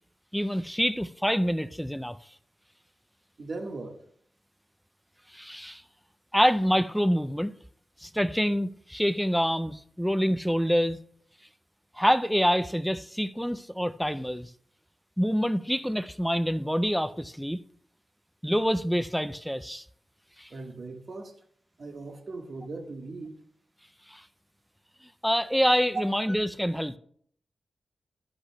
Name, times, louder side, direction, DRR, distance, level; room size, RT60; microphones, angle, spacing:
voice 1, 0.3-2.2 5.3-5.8 6.3-7.5 8.0-11.0 12.0-14.5 15.2-17.6 18.4-19.8 20.4-20.5 24.1-24.2 25.2-27.0, equal, ahead, 0.3 m, -26 dB
voice 2, 3.4-4.0 20.5-21.4 21.8-23.4 25.9-26.0, right 3 dB, 55° right, 1.4 m, -38 dB
12.5 x 11.5 x 2.2 m
wide cardioid pair, 100°, 0 cm